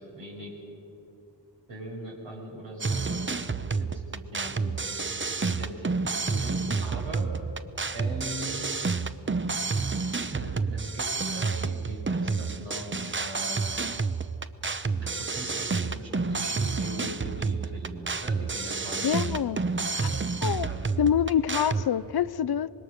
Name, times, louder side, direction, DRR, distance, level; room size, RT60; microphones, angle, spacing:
voice 1, 0.1-0.5 1.7-4.8 5.5-7.3 7.9-8.7 10.3-12.9 13.2-13.6 15.0-19.4 20.6-20.8 21.5-21.7, right 1 dB, 80° right, -3 dB, 6.5 m, -40 dB
sound 1, 2.8-21.9, right 4 dB, 25° right, 0.8 m, -30 dB
voice 2, 19.0-19.6 19.9-20.7 21.0-22.7, left 9 dB, 60° left, 16 dB, 0.6 m, -26 dB
25.5 x 21.0 x 6.5 m, 2.8 s
wide cardioid pair, 80°, 44 cm